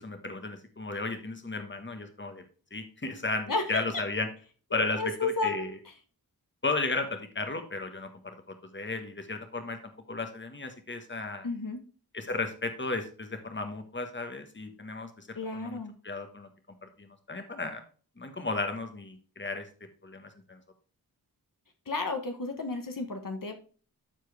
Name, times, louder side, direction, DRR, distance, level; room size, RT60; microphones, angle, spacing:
voice 1, 0.0-2.4 2.7-4.3 4.7-5.7 6.6-9.8 10.1-11.5 12.1-15.8 16.0-16.5 17.0-17.8 18.2-19.7 20.0-20.6, left 3 dB, 30° left, 7 dB, 1.5 m, -34 dB
voice 2, 3.5-3.8 4.7-5.8 11.4-11.8 15.3-15.9 21.9-23.5, left 3 dB, 60° left, 5 dB, 1.4 m, -32 dB
13.0 x 4.5 x 3.5 m, 0.39 s
wide cardioid pair, 60°, 37 cm